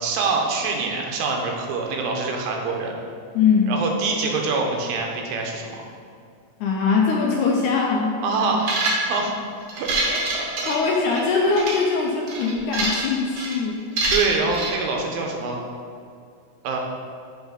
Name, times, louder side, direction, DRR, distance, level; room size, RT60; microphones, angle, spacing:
voice 1, 0.0-2.9 3.7-5.9 8.2-8.7 9.0-9.3 9.7-10.5 11.3-11.5 14.1-15.6 16.6-16.8, right 4 dB, 85° right, 1 dB, 2.6 m, -25 dB
voice 2, 3.3-3.7 6.6-8.2 10.6-13.9, left 5 dB, 80° left, -1 dB, 1.8 m, -21 dB
sound 1, 8.6-9.3 9.7-11.2 11.5-11.8 12.3-13.1 13.4-13.6 14.0-14.7, right 2 dB, 60° right, 1.6 m, -25 dB
7.0 x 4.4 x 5.1 m, 2.2 s
omnidirectional pair, 4.0 m